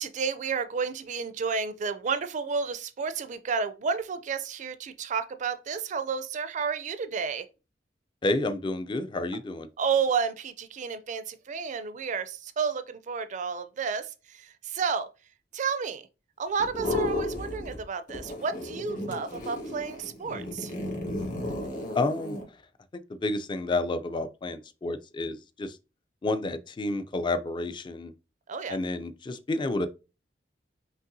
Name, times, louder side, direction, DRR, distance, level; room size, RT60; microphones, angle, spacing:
voice 1, 0.0-7.5 9.8-15.1 15.5-16.1 16.4-20.7 28.5-28.8, right 5 dB, 45° right, 0.4 m, -31 dB
voice 2, 8.2-9.7 21.9-22.4 22.9-25.8 26.2-28.1 28.7-29.9, left 2 dB, 25° left, 0.3 m, -30 dB
sound 1, 16.6-17.8 18.1-22.4, left 1 dB, 50° left, 1.7 m, -33 dB
5.4 x 2.9 x 2.6 m
head